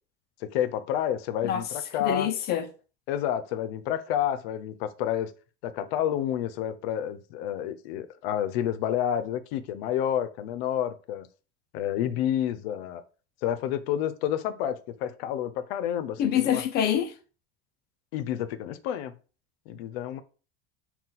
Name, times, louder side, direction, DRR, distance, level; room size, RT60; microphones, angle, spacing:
voice 1, 0.4-2.3 3.1-5.3 5.6-11.3 11.7-13.0 13.4-16.6 18.1-19.1 19.7-20.2, left 10 dB, 85° left, 0.6 m, -29 dB
voice 2, 2.0-2.7 16.2-17.1, left 9 dB, 35° left, 0.4 m, -26 dB
4.1 x 2.3 x 3.9 m
cardioid pair, 155°, 30 cm